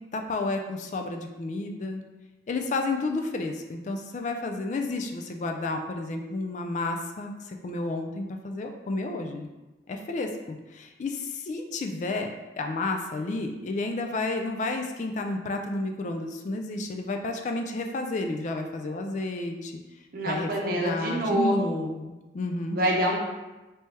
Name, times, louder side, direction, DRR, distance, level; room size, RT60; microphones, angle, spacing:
voice 1, 0.0-2.0 2.5-9.5 9.9-12.3 12.6-19.7 20.2-22.8, left 2 dB, 40° left, 4 dB, 0.3 m, -31 dB
voice 2, 20.1-21.6 22.7-23.2, right 1 dB, 55° right, -1 dB, 0.7 m, -26 dB
3.3 x 3.1 x 2.8 m, 1.1 s
head